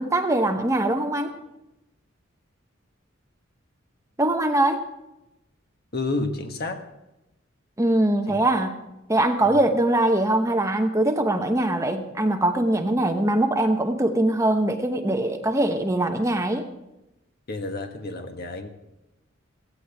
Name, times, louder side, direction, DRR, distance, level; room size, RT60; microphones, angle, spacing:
voice 1, 0.0-1.4 4.2-4.8 7.8-8.7 9.1-16.7, right 1 dB, 15° right, 5 dB, 0.9 m, -22 dB
voice 2, 5.9-6.8 8.3-8.4 17.5-18.7, left 2 dB, 50° left, 6 dB, 1.3 m, -30 dB
16.5 x 16.5 x 3.5 m, 0.92 s
head